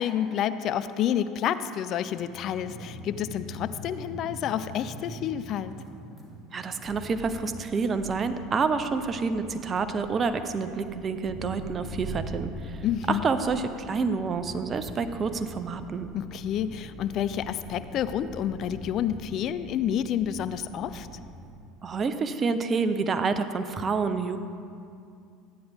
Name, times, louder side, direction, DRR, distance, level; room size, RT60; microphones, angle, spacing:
voice 1, 0.0-5.7 12.8-13.3 16.1-21.1, left 10 dB, 50° left, 13 dB, 0.4 m, -29 dB
sound 1, 1.9-21.5, right 1 dB, 15° right, 2.6 m, -43 dB
voice 2, 6.5-12.8 13.1-16.1 21.8-24.4, right 4 dB, 35° right, 10 dB, 0.7 m, -28 dB
13.5 x 9.4 x 3.5 m, 2.4 s
hypercardioid pair, 75°, 0 cm